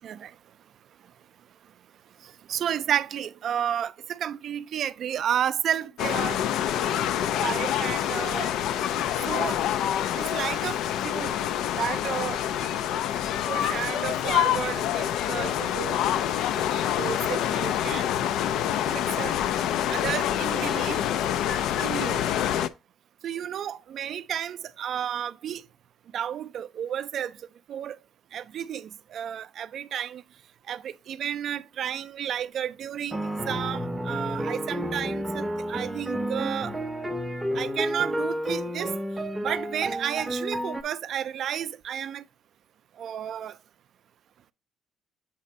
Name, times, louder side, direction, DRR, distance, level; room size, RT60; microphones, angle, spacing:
voice 1, 2.2-6.4 6.8-7.0 7.4-8.5 9.2-9.6 10.2-10.8 11.0-11.4 11.8-12.4 13.5-18.1 18.9-19.4 19.9-21.0 21.8-22.2 23.2-25.6 26.1-27.4 27.7-28.0 28.3-30.2 30.7-36.7 37.5-38.9 39.4-42.2 43.0-43.6, right 9 dB, 50° right, 0.3 m, -32 dB
sound 1, 6.0-22.7, left 10 dB, 75° left, 0.3 m, -26 dB
sound 2, 33.1-40.8, equal, 5° right, 0.6 m, -31 dB
7.3 x 2.6 x 5.1 m
cardioid pair, 145°, 0 cm